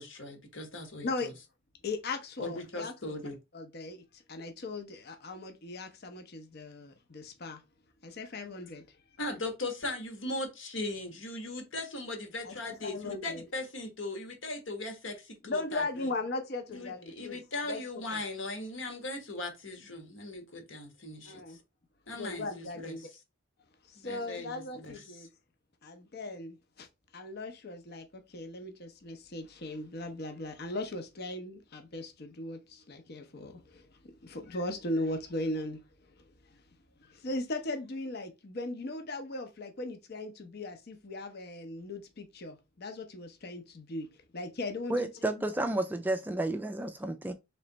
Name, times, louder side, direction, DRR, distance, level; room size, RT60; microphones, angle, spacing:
voice 1, 0.0-1.3 2.4-3.4 9.2-16.1 16.7-21.6 22.1-23.0 24.0-25.0, left 2 dB, 75° left, 1.2 m, -39 dB
voice 2, 1.8-3.2 3.5-7.6 8.0-9.0 12.4-13.4 15.4-17.4 17.7-17.8 18.1-18.2 21.2-21.6 22.1-23.1 23.9-25.3 25.8-26.9 27.1-35.8 36.1-36.2 36.5-36.6 37.0-44.1 44.3-45.1 45.4-45.5, left 2 dB, 55° left, 0.7 m, -38 dB
voice 3, 44.9-47.3, right 1 dB, 10° right, 0.3 m, -31 dB
3.3 x 3.1 x 3.9 m
head